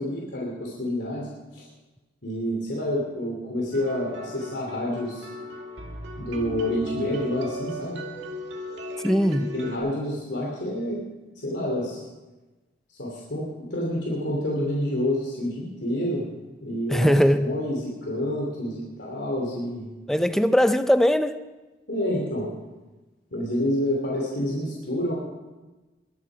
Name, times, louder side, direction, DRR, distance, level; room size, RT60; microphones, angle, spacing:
voice 1, 0.0-1.7 2.2-5.3 6.2-8.0 9.5-11.0 11.4-12.0 12.9-16.2 16.6-17.1 17.4-19.9 21.9-22.5 23.3-25.1, left 1 dB, 70° left, 2.7 m, -28 dB
sound 1, 3.7-9.8, left 1 dB, 80° right, 2.1 m, -36 dB
voice 2, 9.0-9.5 16.9-17.5 20.1-21.4, equal, ahead, 0.5 m, -20 dB
22.0 x 8.5 x 6.2 m
head